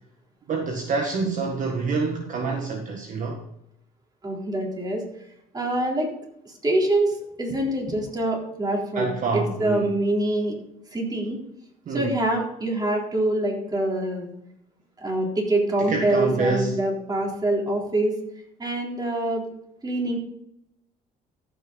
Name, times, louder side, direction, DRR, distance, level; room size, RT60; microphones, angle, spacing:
voice 1, 0.5-3.4 8.9-10.0 11.9-12.1 15.8-16.8, right 4 dB, 50° right, 2 dB, 1.6 m, -27 dB
voice 2, 4.2-5.0 5.5-6.1 6.5-10.6 10.9-11.4 11.9-14.3 15.0-18.2 18.6-19.5 19.8-20.2, right 1 dB, 25° right, -1 dB, 3.7 m, -25 dB
14.5 x 6.4 x 4.0 m, 0.77 s
cardioid pair, 110°, 17 cm